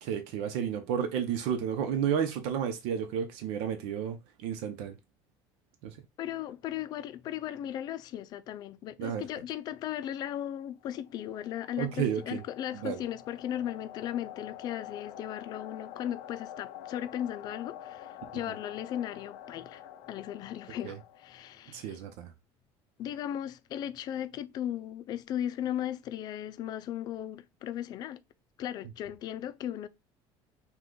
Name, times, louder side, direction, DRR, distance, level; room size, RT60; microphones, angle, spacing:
voice 1, 0.0-4.2 4.4-4.9 5.8-5.9 9.0-9.2 11.8-12.4 12.8-13.0 20.8-20.9 21.7-22.3, right 8 dB, 85° right, 0.8 m, -31 dB
voice 2, 6.2-19.8 20.1-22.0 23.0-28.2 28.6-29.9, left 11 dB, 45° left, 0.4 m, -37 dB
sound 1, 10.8-21.7, left 11 dB, 80° left, 0.7 m, -47 dB
5.7 x 2.4 x 3.8 m
cardioid pair, 165°, 10 cm